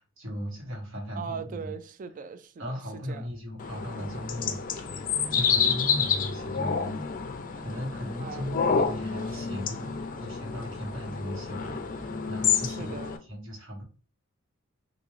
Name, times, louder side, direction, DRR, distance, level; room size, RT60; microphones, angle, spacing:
voice 1, 0.2-1.7 2.6-5.0 5.3-7.0 7.6-8.5 8.8-9.9 10.2-13.0 13.3-13.8, equal, 65° right, 1.4 m, -37 dB
voice 2, 1.1-3.3 8.2-8.6 9.4-9.6 12.6-13.2, right 6 dB, 40° right, 0.4 m, -40 dB
sound 1, 3.6-13.2, left 6 dB, 40° left, 0.4 m, -29 dB
3.6 x 2.6 x 3.1 m
head